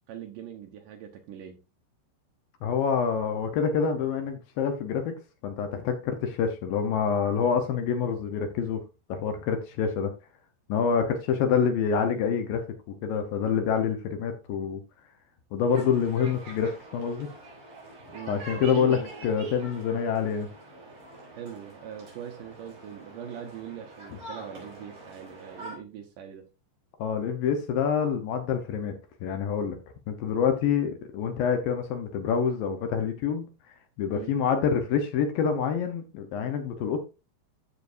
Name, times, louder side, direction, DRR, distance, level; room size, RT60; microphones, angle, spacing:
voice 1, 0.1-1.6 18.1-19.1 21.3-26.5 34.1-34.3, right 9 dB, 75° right, 2.0 m, -41 dB
voice 2, 2.6-5.1 5.4-8.8 9.1-10.1 10.7-12.6 13.0-14.8 15.5-17.3 18.3-20.5 27.0-28.9 29.2-29.8 30.1-33.5 34.0-37.0, left 7 dB, 70° left, 2.3 m, -26 dB
sound 1, 15.7-25.8, right 2 dB, 55° right, 6.1 m, -45 dB
14.0 x 5.2 x 2.6 m
omnidirectional pair, 5.0 m